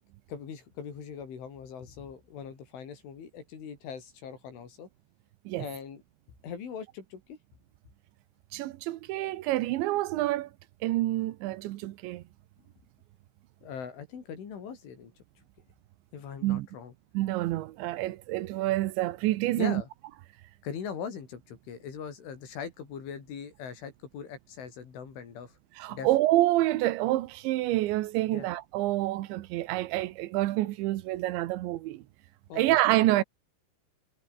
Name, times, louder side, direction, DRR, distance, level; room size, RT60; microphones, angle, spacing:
voice 1, 0.3-4.9 5.5-6.0 6.4-7.4 13.6-15.1 15.4-15.5 16.1-16.9 19.6-19.9 20.6-25.6 25.9-26.1 28.3-28.5 32.5-32.8, left 7 dB, 70° left, 6.9 m, -41 dB
voice 2, 8.5-10.5 10.8-12.2 16.4-16.7 17.1-19.8 25.8-32.0 32.5-33.2, right 16 dB, 75° right, 3.1 m, -27 dB
omnidirectional pair, 5.7 m